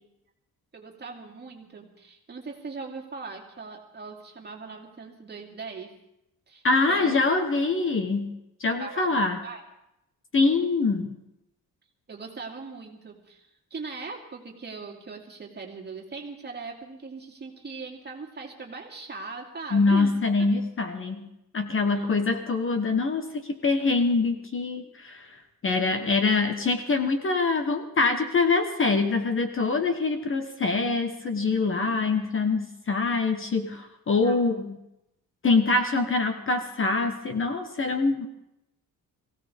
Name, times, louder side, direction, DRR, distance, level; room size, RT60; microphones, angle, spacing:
voice 1, 0.7-6.0 6.5-7.2 8.8-9.6 12.1-20.1 20.4-20.5 21.9-22.0 34.2-34.4, right 4 dB, 25° right, 0 dB, 2.6 m, -40 dB
voice 2, 6.6-8.3 8.6-9.4 10.3-11.2 19.7-21.3 21.5-25.4 25.6-34.8 35.4-38.3, left 3 dB, 35° left, 6 dB, 1.2 m, -24 dB
23.0 x 16.5 x 3.5 m, 0.84 s
cardioid pair, 155°, 37 cm